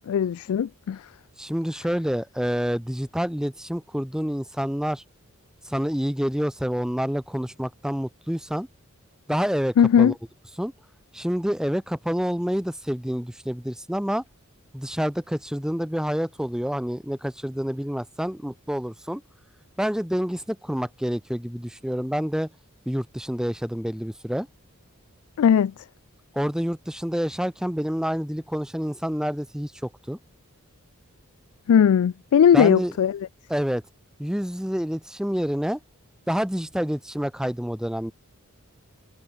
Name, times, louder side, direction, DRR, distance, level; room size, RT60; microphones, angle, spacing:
voice 1, 0.1-1.1 9.8-10.1 25.4-25.7 31.7-33.2, left 8 dB, 75° left, 0.3 m, -18 dB
voice 2, 1.4-5.0 5.6-8.7 9.3-10.1 10.6-10.7 11.1-14.2 14.7-19.2 19.8-22.5 22.9-24.5 26.3-30.2 32.5-32.9 33.5-33.8 34.2-35.8 36.3-38.1, equal, 5° right, 0.7 m, -28 dB
head